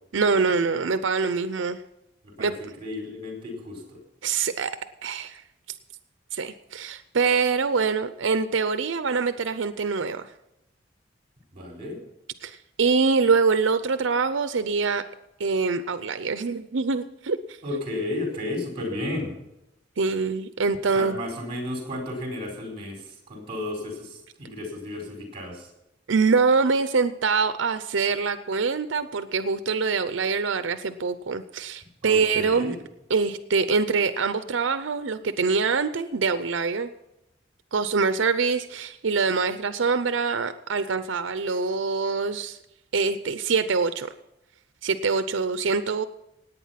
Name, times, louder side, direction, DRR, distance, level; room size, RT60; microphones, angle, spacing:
voice 1, 0.1-1.8 2.4-2.5 4.2-4.7 5.0-5.4 6.3-10.3 12.4-15.0 15.4-17.6 20.0-21.2 26.1-32.8 33.1-36.9 37.7-42.6 42.9-44.1 44.8-46.1, right 4 dB, 85° right, 11 dB, 0.6 m, -24 dB
voice 2, 2.2-4.0 11.5-12.0 17.6-19.3 20.9-25.7 32.0-32.7, left 1 dB, 30° right, 0 dB, 4.4 m, -33 dB
17.5 x 9.1 x 5.7 m, 0.89 s
head